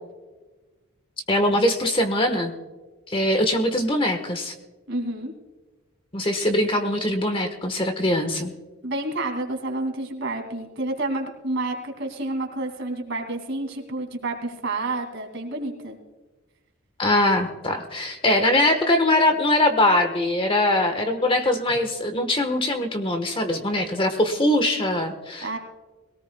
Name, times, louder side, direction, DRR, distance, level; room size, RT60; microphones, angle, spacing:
voice 1, 1.3-2.5 3.1-4.5 6.1-8.5 17.0-25.6, left 1 dB, 25° left, 6 dB, 1.2 m, -22 dB
voice 2, 4.9-5.3 8.8-16.0 25.4-25.6, right 2 dB, 55° right, 3 dB, 2.4 m, -29 dB
22.5 x 18.0 x 2.3 m, 1.2 s
head